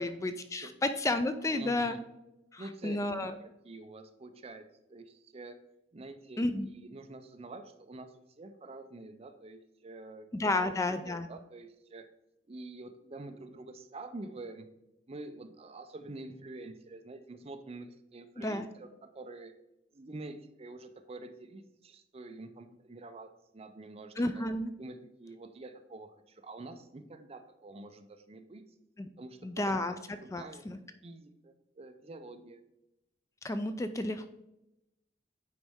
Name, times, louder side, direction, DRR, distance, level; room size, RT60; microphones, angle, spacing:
voice 1, 0.0-2.0 2.5-3.3 6.4-6.7 10.3-11.3 18.4-18.7 24.2-24.7 29.0-29.1 29.4-30.8 33.4-34.4, left 2 dB, 15° left, 10 dB, 0.3 m, -32 dB
voice 2, 1.4-2.0 2.6-4.6 4.9-5.6 5.9-12.1 12.5-14.7 15.1-19.5 19.9-24.4 24.8-28.6 29.2-30.6 31.0-32.6, right 2 dB, 35° right, 8 dB, 0.5 m, -47 dB
9.4 x 4.1 x 3.6 m, 0.89 s
head